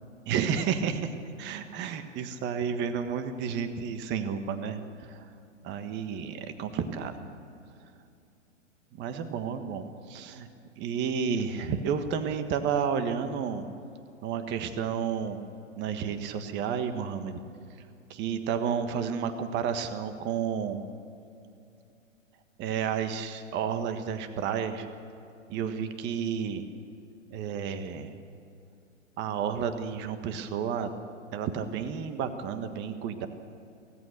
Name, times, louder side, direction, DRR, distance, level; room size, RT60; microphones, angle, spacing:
voice 1, 0.2-1.1 1.4-5.3 5.6-7.2 9.0-10.5 10.8-13.7 14.2-15.4 15.8-17.4 18.1-20.8 22.6-24.9 25.5-26.6 27.3-28.1 29.2-30.9 31.3-33.3, right 7 dB, 30° right, 8 dB, 1.5 m, -31 dB
23.5 x 17.5 x 6.7 m, 2.6 s
hypercardioid pair, 115°, 39 cm